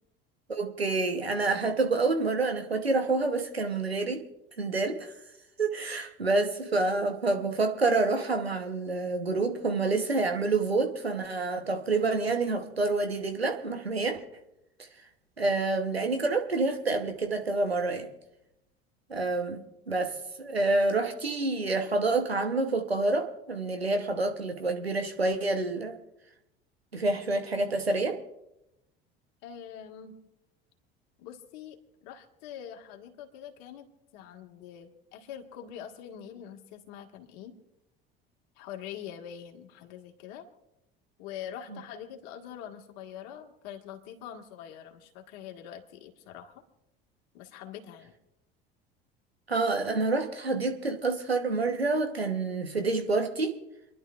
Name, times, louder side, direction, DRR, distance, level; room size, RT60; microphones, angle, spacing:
voice 1, 0.5-4.2 4.6-5.1 5.6-14.2 15.4-18.1 19.1-26.0 26.9-28.2 49.5-53.6, right 3 dB, 90° right, 1.1 m, -28 dB
voice 2, 29.4-30.1 31.2-33.9 34.1-37.6 38.6-40.5 41.2-46.6 47.3-48.1, left 9 dB, 55° left, 1.8 m, -44 dB
29.5 x 11.0 x 2.5 m
figure-of-eight pair, 65°, 30 cm